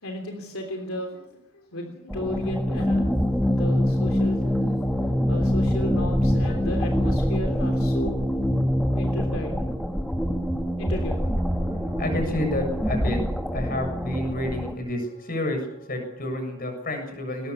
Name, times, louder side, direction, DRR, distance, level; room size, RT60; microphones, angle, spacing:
voice 1, 0.0-8.3 8.9-9.7 10.8-11.3, left 1 dB, 70° left, 3 dB, 3.3 m, -34 dB
sound 1, 2.1-14.7, equal, ahead, 1.5 m, -24 dB
voice 2, 11.6-17.5, left 1 dB, 40° left, 5 dB, 7.1 m, -30 dB
21.5 x 20.0 x 7.1 m, 0.78 s
head